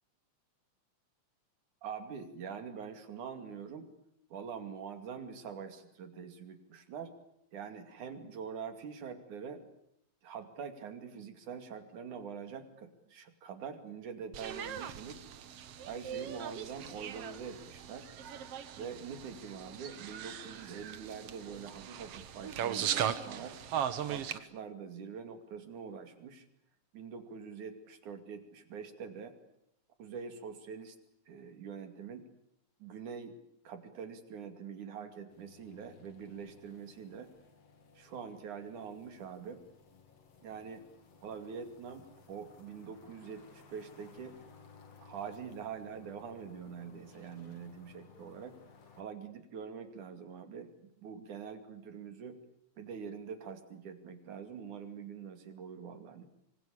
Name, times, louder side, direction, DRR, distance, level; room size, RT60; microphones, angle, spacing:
voice 1, 1.8-3.9 4.3-7.1 7.5-9.6 10.2-15.2 15.9-18.1 18.8-23.6 24.1-26.5 26.9-29.3 30.0-31.0 31.3-32.3 32.8-33.4 33.6-37.3 38.0-39.6 40.4-40.8 41.2-44.4 45.0-48.6 49.0-50.7 51.0-52.4 52.8-56.3, right 6 dB, 80° right, 8 dB, 4.0 m, -44 dB
sound 1, 14.3-24.4, right 9 dB, 60° right, 2.1 m, -39 dB
sound 2, 35.3-49.0, left 5 dB, 55° left, 3.7 m, -59 dB
25.5 x 24.5 x 8.6 m, 0.77 s
omnidirectional pair, 3.4 m